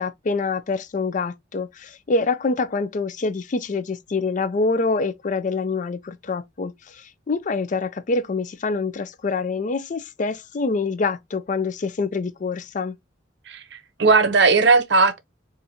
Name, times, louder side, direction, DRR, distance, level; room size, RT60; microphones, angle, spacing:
voice 1, 0.0-12.9, left 3 dB, 45° left, 0.4 m, -26 dB
voice 2, 13.5-15.2, right 4 dB, 65° right, 0.7 m, -17 dB
4.1 x 2.5 x 2.7 m
head